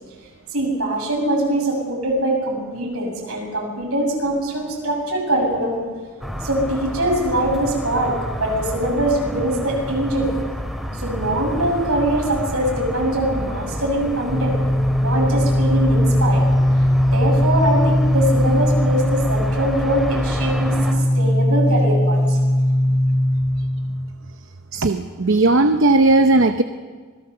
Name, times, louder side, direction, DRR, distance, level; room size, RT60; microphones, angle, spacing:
voice 1, 0.5-5.8 6.4-10.3 10.9-14.6 15.0-16.4 17.0-22.4, right 1 dB, 75° right, 0 dB, 7.1 m, -22 dB
sound 1, 6.2-20.9, equal, ahead, 2.6 m, -29 dB
sound 2, 14.2-24.0, left 1 dB, 35° left, 4.1 m, -19 dB
voice 2, 24.7-26.6, right 2 dB, 60° right, 8 dB, 0.8 m, -16 dB
26.0 x 20.0 x 6.8 m, 1.5 s
head